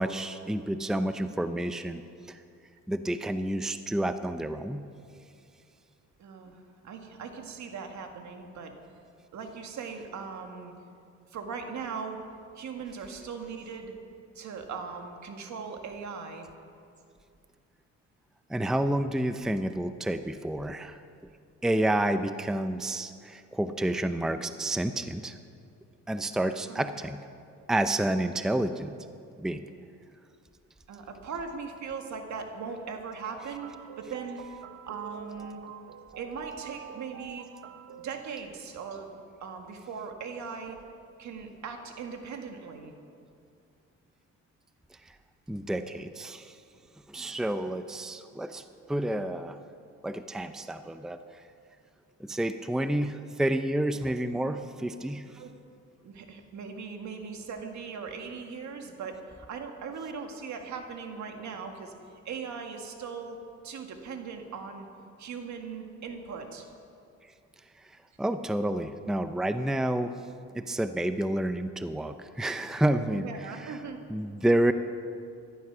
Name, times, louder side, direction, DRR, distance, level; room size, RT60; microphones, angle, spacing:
voice 1, 0.0-2.0 2.3-2.4 2.9-4.8 18.5-21.0 21.6-25.4 26.1-27.2 27.7-29.0 29.4-29.6 45.5-46.6 47.1-49.6 50.0-51.2 52.2-55.2 68.2-70.1 70.5-73.8 74.1-74.7, right 1 dB, ahead, 10 dB, 0.6 m, -29 dB
voice 2, 6.2-8.7 9.3-10.7 11.3-12.2 12.6-13.9 14.4-16.5 26.7-26.9 30.9-34.4 34.8-35.6 36.2-37.5 38.0-40.8 41.2-42.9 55.4-55.5 56.0-61.9 62.3-63.4 63.6-64.9 65.2-66.7 72.9-74.0, right 5 dB, 70° right, 4 dB, 1.9 m, -39 dB
sound 1, 33.2-38.2, right 10 dB, 50° right, 0.6 m, -46 dB
14.5 x 12.5 x 6.1 m, 2.4 s
cardioid pair, 90°, 30 cm